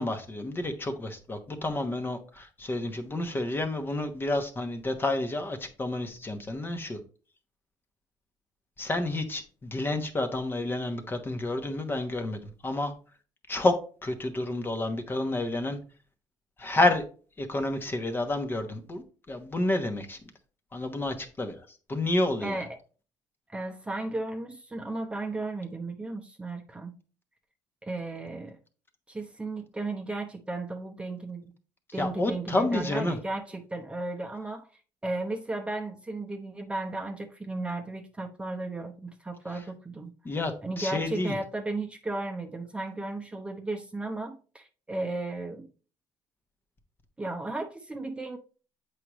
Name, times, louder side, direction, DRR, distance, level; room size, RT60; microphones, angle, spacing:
voice 1, 0.0-7.0 8.8-12.9 13.5-13.7 14.0-15.8 16.6-17.0 17.4-20.2 20.7-21.6 21.9-22.6 32.0-33.2 40.2-41.3, left 2 dB, 25° left, 7 dB, 1.1 m, -29 dB
voice 2, 23.5-26.9 27.8-28.6 29.1-31.5 31.9-40.1 40.6-45.7 47.2-48.4, right 2 dB, 15° right, 2 dB, 0.8 m, -35 dB
7.6 x 4.9 x 3.0 m, 0.37 s
cardioid pair, 100°, 9 cm